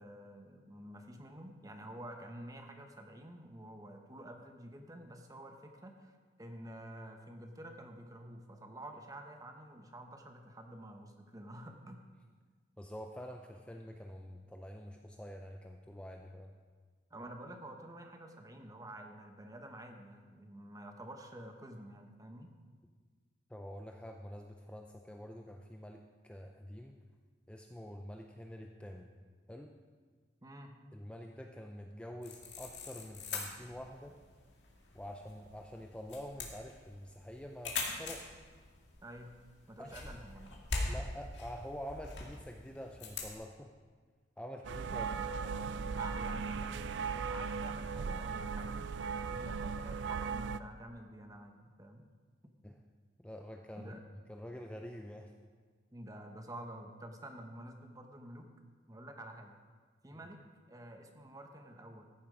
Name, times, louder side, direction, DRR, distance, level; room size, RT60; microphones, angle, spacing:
voice 1, 0.0-12.0 17.1-22.6 30.4-30.7 39.0-39.3 39.7-41.0 44.9-45.2 46.0-52.1 53.8-54.0 55.9-58.5 58.9-59.6 60.0-60.4 60.7-62.1, right 1 dB, 20° right, 4 dB, 0.9 m, -49 dB
voice 2, 12.8-16.5 23.5-27.0 27.5-29.1 29.5-29.7 30.9-34.2 34.9-38.2 39.8-39.9 40.9-43.7 44.4-45.1 45.4-45.8 52.6-52.8 53.2-53.9 54.3-55.3 60.1-60.2, equal, 5° left, 2 dB, 0.5 m, -47 dB
sound 1, 32.2-43.3, left 3 dB, 70° left, 1.9 m, -43 dB
sound 2, 44.6-50.6, right 5 dB, 70° right, 0.3 m, -37 dB
14.0 x 7.2 x 4.9 m, 1.5 s
head